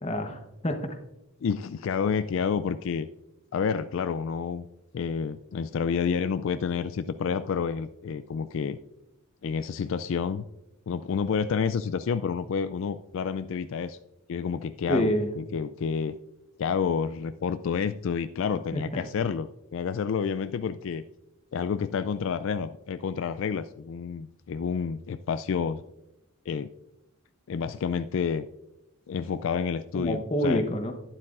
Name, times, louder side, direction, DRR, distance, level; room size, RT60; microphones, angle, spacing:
voice 1, 0.0-0.8 14.9-15.3 18.7-19.0 29.9-30.9, equal, 30° left, 5 dB, 0.9 m, -27 dB
voice 2, 1.4-3.1 3.5-4.7 4.9-8.8 9.4-10.4 10.9-14.0 14.3-16.2 16.6-21.0 21.5-25.8 26.5-26.7 27.5-28.4 29.1-30.6, left 6 dB, 65° left, 12 dB, 0.3 m, -29 dB
11.5 x 10.0 x 2.5 m, 0.91 s
head